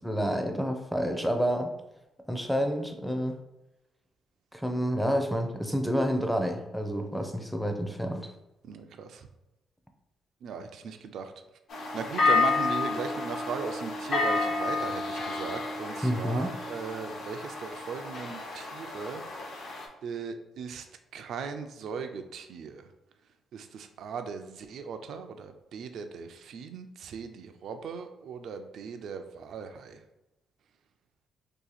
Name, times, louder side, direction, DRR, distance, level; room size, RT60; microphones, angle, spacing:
voice 1, 0.0-1.7 2.3-3.4 4.5-8.3 16.0-16.5, equal, ahead, 5 dB, 0.4 m, -29 dB
voice 2, 8.6-9.3 10.4-11.3 11.9-19.2 20.0-20.9 21.1-22.9 23.5-30.0, right 6 dB, 70° right, 7 dB, 0.3 m, -38 dB
sound 1, 11.7-19.9, left 3 dB, 65° left, 0.8 m, -30 dB
2.7 x 2.4 x 3.9 m, 0.96 s
cardioid pair, 90°, 0 cm